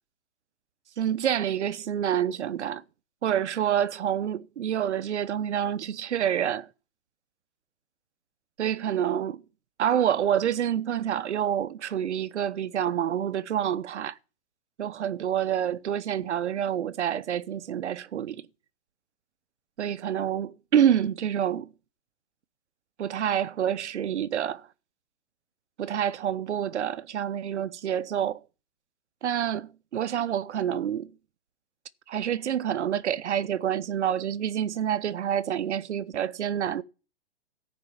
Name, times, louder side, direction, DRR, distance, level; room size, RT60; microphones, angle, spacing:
voice 1, 1.0-2.8 3.2-6.7 8.6-9.4 9.8-14.1 14.8-18.4 19.8-21.7 23.0-24.7 25.8-28.4 29.2-31.1 32.1-36.8, right 9 dB, 90° right, 0.9 m, -27 dB
14.0 x 5.3 x 7.2 m
hypercardioid pair, 170°, 33 cm